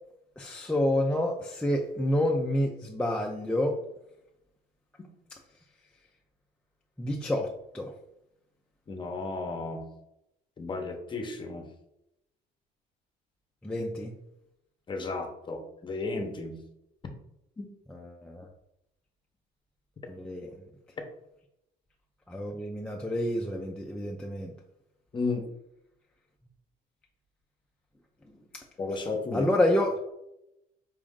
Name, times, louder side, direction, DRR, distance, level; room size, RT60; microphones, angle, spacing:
voice 1, 0.4-3.8 7.0-7.9 13.6-14.1 17.9-18.5 20.1-20.6 22.3-24.5 29.3-29.9, left 1 dB, 5° left, 0 dB, 0.4 m, -28 dB
voice 2, 8.9-9.8 10.6-11.7 14.9-16.6 17.6-17.7 25.1-25.4 28.8-29.5, left 3 dB, 30° left, 4 dB, 0.8 m, -33 dB
4.7 x 2.5 x 3.6 m, 0.84 s
cardioid pair, 110°, 17 cm